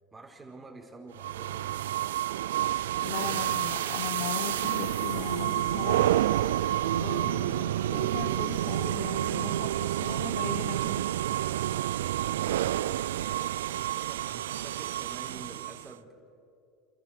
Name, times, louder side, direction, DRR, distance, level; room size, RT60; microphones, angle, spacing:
voice 1, 0.1-1.8 12.4-16.1, right 3 dB, 15° right, 1 dB, 4.4 m, -49 dB
sound 1, 1.2-15.9, right 13 dB, 80° right, 0.4 m, -29 dB
Wind instrument woodwind instrument, 1.7-10.1, right 3 dB, 65° right, 3.7 m, -55 dB
voice 2, 3.0-6.2 6.9-11.0, left 10 dB, 70° left, 10 dB, 1.1 m, -38 dB
sound 2, 3.1-8.3, left 11 dB, 45° left, 1.2 m, -49 dB
29.5 x 14.0 x 6.6 m, 2.6 s
hypercardioid pair, 95°, 0 cm